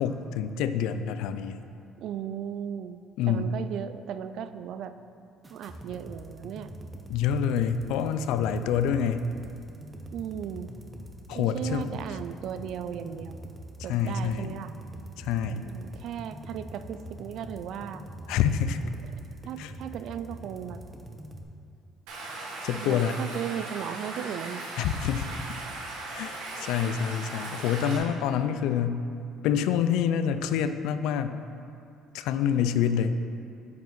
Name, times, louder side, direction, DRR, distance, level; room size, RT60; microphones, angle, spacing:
voice 1, 0.0-1.6 3.2-3.5 7.1-9.2 11.3-12.0 13.8-14.5 15.2-15.7 18.3-18.8 19.6-19.7 22.6-23.2 24.8-25.3 26.1-29.0 29.4-31.4 32.1-33.2, left 8 dB, 80° left, 10 dB, 0.3 m, -27 dB
voice 2, 2.0-3.0 3.3-4.9 5.5-6.7 10.1-10.7 11.3-13.4 13.8-14.7 15.7-18.0 19.5-20.8 22.7-24.7, right 9 dB, 65° right, 11 dB, 0.3 m, -36 dB
sound 1, 5.4-21.4, right 1 dB, 20° right, 0.8 m, -43 dB
Stream, 22.1-28.0, right 2 dB, 85° right, 1.4 m, -38 dB
9.3 x 4.9 x 3.9 m, 2.5 s
supercardioid pair, 90°, 0 cm